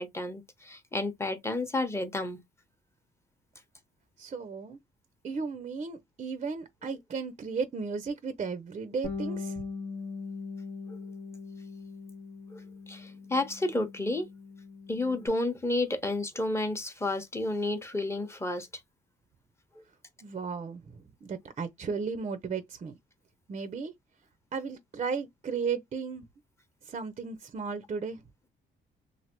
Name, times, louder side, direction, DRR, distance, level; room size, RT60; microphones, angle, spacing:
voice 1, 0.0-2.4 10.9-11.0 12.5-12.6 12.9-14.3 14.9-18.7 19.8-19.9, left 2 dB, 15° left, 0.7 m, -31 dB
voice 2, 4.2-4.8 5.2-9.6 20.2-22.9 23.5-23.9 24.5-26.2 26.8-28.2, right 5 dB, 35° right, 0.5 m, -35 dB
Bass guitar, 9.0-15.3, left 4 dB, 75° left, 1.0 m, -41 dB
3.2 x 2.0 x 2.9 m
cardioid pair, 90°, 20 cm